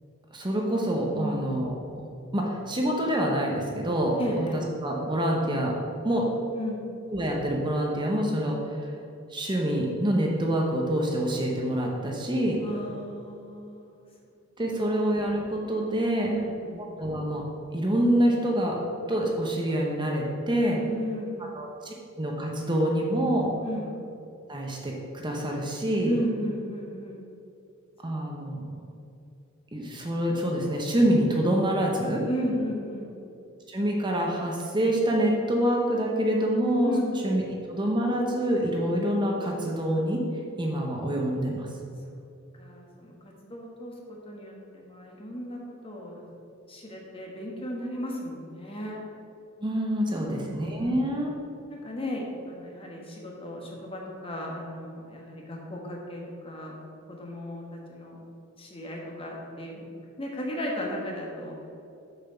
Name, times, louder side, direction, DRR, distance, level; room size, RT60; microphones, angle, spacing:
voice 1, 0.3-1.7 2.3-5.7 6.0-6.2 7.1-8.9 9.3-12.6 14.6-16.3 17.0-17.4 17.7-18.8 19.1-20.8 21.5-23.5 24.5-26.1 28.0-28.7 29.7-32.2 33.7-36.9 37.2-37.4 37.7-40.2 40.6-41.7 49.6-51.3, right 1 dB, 20° right, -1 dB, 0.9 m, -26 dB
voice 2, 1.1-1.5 4.2-4.6 6.5-6.9 12.6-14.0 16.3-16.8 20.8-21.5 23.6-23.9 26.0-27.2 32.3-33.2 36.8-37.2 42.6-46.3 46.7-49.0 50.2-50.8 51.7-56.7 57.1-58.3 58.6-59.9 60.2-61.6, equal, 25° left, -1 dB, 1.4 m, -35 dB
7.0 x 5.9 x 5.7 m, 2.6 s
head